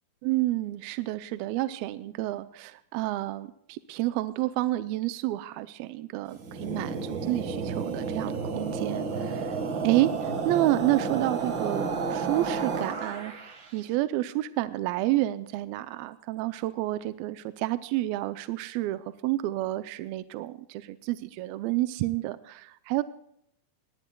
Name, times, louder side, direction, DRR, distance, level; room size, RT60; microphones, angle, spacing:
voice 1, 0.2-9.6 9.8-13.3 13.7-23.0, right 16 dB, 80° right, 12 dB, 2.3 m, -29 dB
sound 1, 6.3-13.7, right 4 dB, 50° right, 1.4 m, -31 dB
20.0 x 19.5 x 2.2 m, 0.73 s
omnidirectional pair, 4.5 m